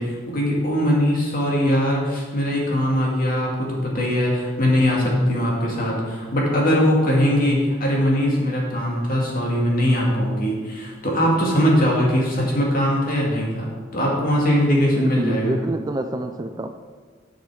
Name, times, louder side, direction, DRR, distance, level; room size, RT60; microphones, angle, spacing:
voice 1, 0.0-15.6, equal, 50° left, -3 dB, 2.3 m, -21 dB
voice 2, 15.0-16.7, right 2 dB, 20° right, 7 dB, 0.4 m, -27 dB
10.0 x 6.2 x 4.9 m, 1.5 s
head